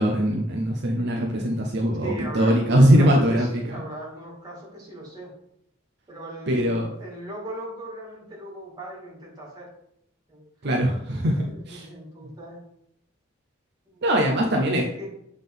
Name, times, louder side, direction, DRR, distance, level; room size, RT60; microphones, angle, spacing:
voice 1, 0.0-3.8 6.5-6.9 10.6-11.9 14.0-14.9, equal, 55° right, 1 dB, 0.7 m, -21 dB
voice 2, 2.0-5.3 6.1-9.7 10.3-10.9 11.2-12.6 13.9-14.0 14.3-15.1, right 1 dB, 20° right, -4 dB, 2.2 m, -39 dB
7.5 x 3.7 x 3.6 m, 0.77 s
head